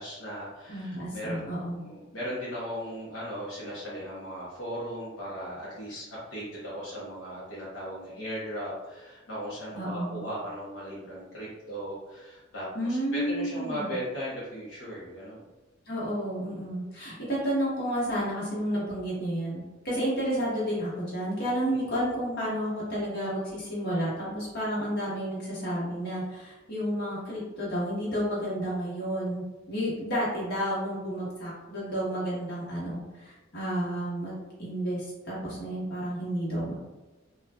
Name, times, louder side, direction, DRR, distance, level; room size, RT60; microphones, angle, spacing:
voice 1, 0.0-6.0 6.3-12.7 13.1-15.4 21.7-21.8, equal, 75° left, -8 dB, 0.9 m, -37 dB
voice 2, 0.7-1.8 9.7-10.2 12.7-13.9 15.9-36.7, equal, 55° left, -7 dB, 1.3 m, -31 dB
3.7 x 2.4 x 2.3 m, 1.1 s
head